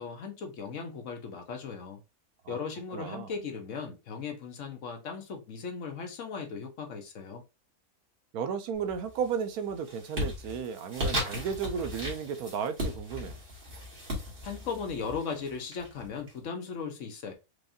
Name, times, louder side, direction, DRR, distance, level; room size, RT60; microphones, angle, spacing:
voice 1, 0.0-2.0 2.5-7.4 14.4-17.3, left 5 dB, 60° left, 1.1 m, -37 dB
voice 2, 2.9-3.3 8.3-13.4, right 7 dB, 80° right, 1.1 m, -34 dB
sound 1, 8.8-9.3 9.7-16.3, left 1 dB, 40° right, 1.7 m, -36 dB
4.7 x 2.6 x 2.6 m
omnidirectional pair, 1.6 m